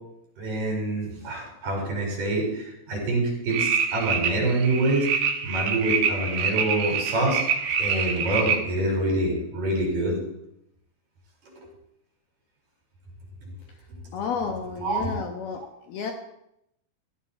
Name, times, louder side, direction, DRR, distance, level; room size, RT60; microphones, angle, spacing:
voice 1, 0.4-7.4 7.8-10.2 11.4-11.7 14.8-15.2, right 1 dB, 45° right, -1 dB, 6.3 m, -26 dB
sound 1, 3.5-8.6, right 6 dB, 65° right, 3.1 m, -26 dB
voice 2, 14.1-15.6 15.9-16.1, left 5 dB, 65° left, 3 dB, 2.9 m, -31 dB
15.5 x 15.0 x 4.4 m, 0.79 s
omnidirectional pair, 5.3 m